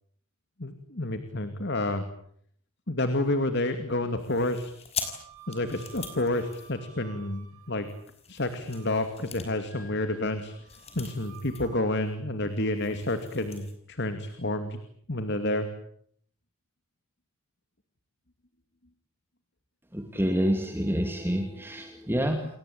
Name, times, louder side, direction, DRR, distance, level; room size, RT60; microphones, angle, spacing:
voice 1, 0.6-2.0 2.9-4.7 5.5-7.9 8.3-10.5 11.0-14.8 15.1-15.7, left 1 dB, 50° left, 8 dB, 2.5 m, -29 dB
sound 1, 4.2-7.3 7.8-11.7 12.0-12.1 12.5-13.7, left 6 dB, 30° left, 5.8 m, -42 dB
Wind instrument woodwind instrument, 5.0-8.0 8.4-9.1 9.7-11.9, right 5 dB, 90° right, 6.6 m, -52 dB
voice 2, 19.9-22.5, equal, 10° right, 4 dB, 2.5 m, -27 dB
29.5 x 22.5 x 8.7 m, 0.66 s
head